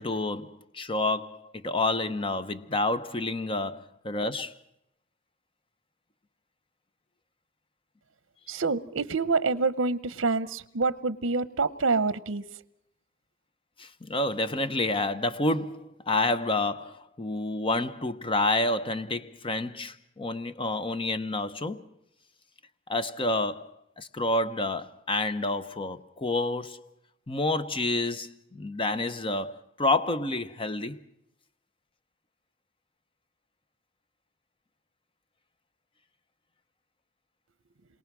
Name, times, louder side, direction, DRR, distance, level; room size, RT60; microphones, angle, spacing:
voice 1, 0.0-4.5 13.8-21.9 22.9-26.9 27.3-31.0, left 2 dB, 25° left, 0.9 m, -29 dB
voice 2, 8.5-12.6, right 4 dB, 70° right, 0.9 m, -27 dB
27.5 x 22.5 x 6.2 m
head